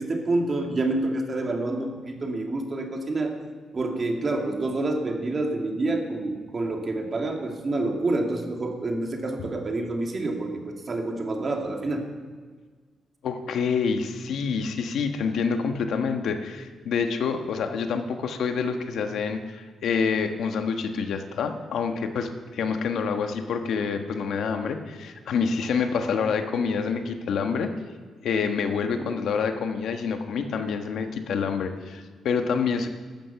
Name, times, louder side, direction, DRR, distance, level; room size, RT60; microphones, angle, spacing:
voice 1, 0.0-3.4 3.7-12.0, right 2 dB, 35° right, 2 dB, 2.3 m, -28 dB
voice 2, 13.2-27.7 28.2-32.9, left 5 dB, 75° left, 6 dB, 1.3 m, -27 dB
15.5 x 13.0 x 5.8 m, 1.5 s
cardioid pair, 115°, 0 cm